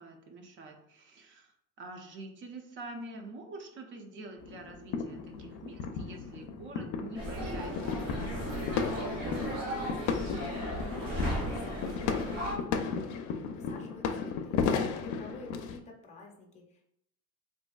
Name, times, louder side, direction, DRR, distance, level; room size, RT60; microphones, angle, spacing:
voice 1, 0.0-9.1, right 2 dB, 40° right, 4 dB, 0.5 m, -46 dB
sound 1, 4.4-15.8, left 6 dB, 85° left, 0.5 m, -35 dB
sound 2, 7.1-12.6, equal, 85° right, 1.3 m, -35 dB
voice 2, 9.7-16.8, left 3 dB, 25° left, 1 dB, 0.5 m, -50 dB
4.0 x 2.6 x 2.2 m, 0.73 s
cardioid pair, 175°, 29 cm